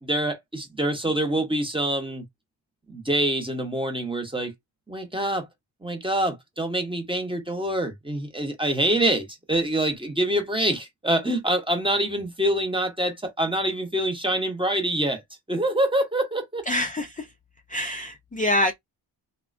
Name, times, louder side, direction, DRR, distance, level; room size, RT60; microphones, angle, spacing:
voice 1, 0.0-2.2 2.9-4.5 4.9-5.5 5.8-15.2 15.5-16.6, right 1 dB, 10° right, 0.8 m, -25 dB
voice 2, 16.7-17.3 17.7-18.7, left 1 dB, 20° left, 0.4 m, -25 dB
3.5 x 2.1 x 2.4 m
wide cardioid pair, 130°, 45 cm